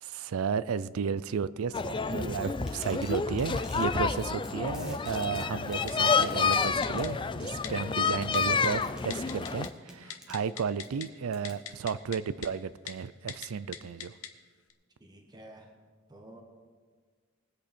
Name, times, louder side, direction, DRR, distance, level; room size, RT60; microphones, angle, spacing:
voice 1, 0.0-14.1, right 6 dB, 75° right, 17 dB, 0.4 m, -33 dB
sound 1, 1.7-9.7, left 5 dB, 20° left, 0.3 m, -29 dB
sound 2, 2.6-3.9 4.2-4.5 4.7-7.1 8.3-10.4 10.8-10.9 11.3-11.6, equal, 5° right, 1.4 m, -49 dB
Typing, 5.9-6.3 6.5-6.6 6.8-7.1 7.6-7.7 8.3-8.7 9.1-9.7 10.0-11.1 11.4-12.2 12.4-12.5 12.9-13.0 13.3-13.5 13.7-14.3 14.7-14.8, left 9 dB, 75° left, 1.0 m, -40 dB
voice 2, 15.0-15.7 16.1-16.4, right 1 dB, 20° right, 1 dB, 1.1 m, -50 dB
20.5 x 8.1 x 4.3 m, 1.5 s
head